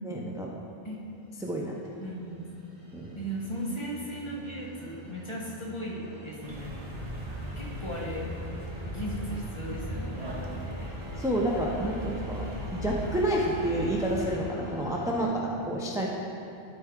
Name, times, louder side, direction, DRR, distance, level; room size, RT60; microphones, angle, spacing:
voice 1, 0.0-0.5 1.4-1.8 2.9-3.2 11.2-12.4 12.7-16.1, right 1 dB, 5° right, -2 dB, 0.3 m, -29 dB
sound 1, 1.1-15.2, right 1 dB, 70° right, 1.9 m, -46 dB
voice 2, 2.0-2.5 3.1-6.7 7.0-7.3 7.5-8.3 8.8-10.9, right 1 dB, 25° left, -5 dB, 1.2 m, -37 dB
sound 2, 6.4-14.4, equal, 40° right, 0.9 m, -38 dB
12.0 x 4.6 x 3.7 m, 2.8 s
omnidirectional pair, 1.1 m